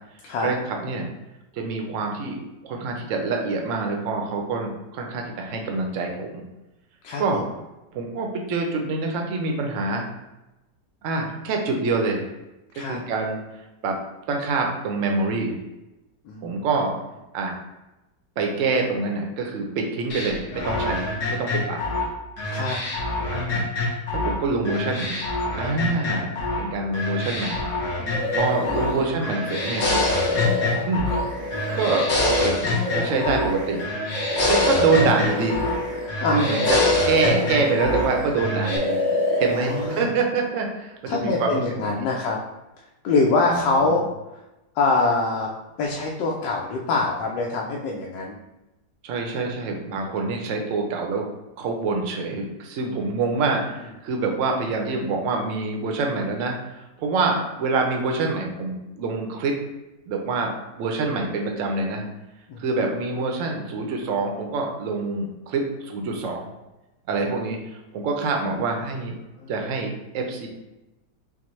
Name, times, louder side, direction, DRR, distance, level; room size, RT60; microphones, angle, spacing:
voice 1, 0.4-1.1 1.5-6.4 7.2-7.4 7.9-10.1 11.0-12.3 12.9-13.4 13.8-14.0 14.3-15.6 16.4-16.9 17.3-17.5 18.4-21.8 23.3-25.2 25.6-27.6 28.3-30.0 30.9-31.1 31.7-32.6 33.0-33.8 34.5-35.7 36.3-36.8 37.0-39.0 39.4-42.1 43.4-44.0 49.0-51.3 51.6-59.6 60.1-62.1 62.6-66.5 67.1-67.6 67.9-69.2 69.5-70.5, right 3 dB, 65° right, 2 dB, 0.8 m, -26 dB
voice 2, 7.0-7.4 12.7-13.0 16.2-16.7 22.5-22.8 28.0-28.4 28.8-29.0 36.2-36.4 39.5-40.1 41.1-42.4 43.0-44.0 44.7-45.5 45.8-48.4 62.5-62.6 69.4-69.5, left 3 dB, 85° left, -2 dB, 1.3 m, -24 dB
sound 1, 20.1-24.4 24.6-26.6 26.9-29.0 29.2-31.2 31.5-33.5 33.8-35.8 36.1-38.1 38.4-38.8, left 2 dB, 70° left, 1.4 m, -26 dB
sound 2, 28.1-29.1 29.5-36.1 36.3-38.3 38.6-40.0, left 1 dB, 30° right, 0.3 m, -27 dB
5.9 x 2.1 x 3.1 m, 0.99 s
omnidirectional pair, 1.9 m